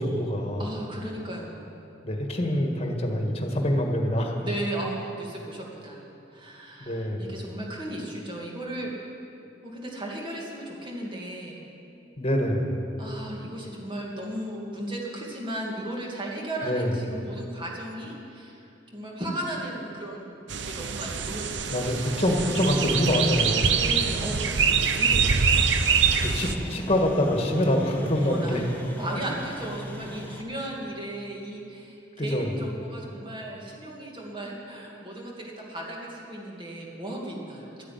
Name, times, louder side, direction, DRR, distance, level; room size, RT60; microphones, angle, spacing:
voice 1, 0.0-0.7 2.0-4.4 6.8-7.3 12.2-12.8 16.6-16.9 21.7-23.7 26.2-28.6 32.2-32.5, left 1 dB, 35° left, 1 dB, 1.7 m, -25 dB
voice 2, 0.6-1.8 4.4-8.9 9.6-11.6 13.0-18.6 18.9-22.2 23.7-25.5 25.8-26.2 28.1-37.9, right 1 dB, 25° right, -2 dB, 2.3 m, -36 dB
sound 1, 20.5-26.6, right 6 dB, 70° right, 0.7 m, -24 dB
sound 2, 22.3-30.4, equal, 10° left, 1.3 m, -39 dB
12.5 x 9.8 x 9.2 m, 2.7 s
head